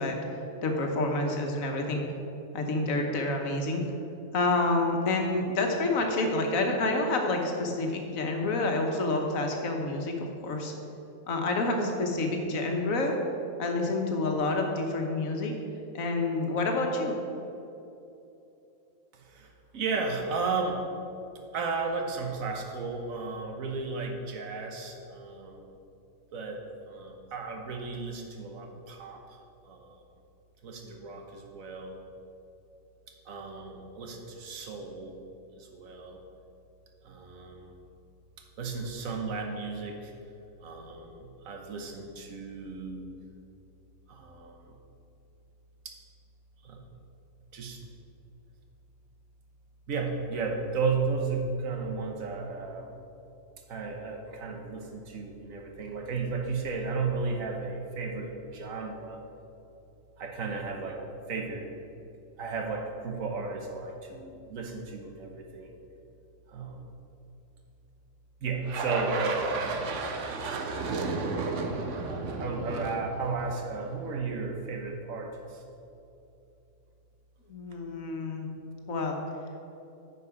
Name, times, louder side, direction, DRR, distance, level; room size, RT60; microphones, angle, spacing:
voice 1, 0.0-2.0 2.5-3.8 4.3-10.1 10.4-10.7 11.3-13.1 13.6-15.5 15.9-17.1 77.5-78.5 78.9-79.2, left 2 dB, 85° left, 3 dB, 1.4 m, -28 dB
voice 2, 19.1-20.8 21.5-25.7 26.3-26.6 26.9-29.2 29.6-30.0 30.6-32.0 33.2-35.1 35.6-36.2 37.0-37.7 38.6-40.1 40.6-43.1 44.1-44.7 45.8-45.9 46.6-46.8 47.5-47.8 49.9-53.0 53.7-59.2 60.2-61.0 61.3-61.7 62.4-65.8 66.5-66.9 68.4-69.8 71.8-72.1 72.4-75.6, right 4 dB, 85° right, 2 dB, 1.4 m, -34 dB
sound 1, 68.7-74.0, right 3 dB, 70° right, 1.1 m, -33 dB
9.3 x 5.4 x 4.8 m, 2.8 s
omnidirectional pair, 1.4 m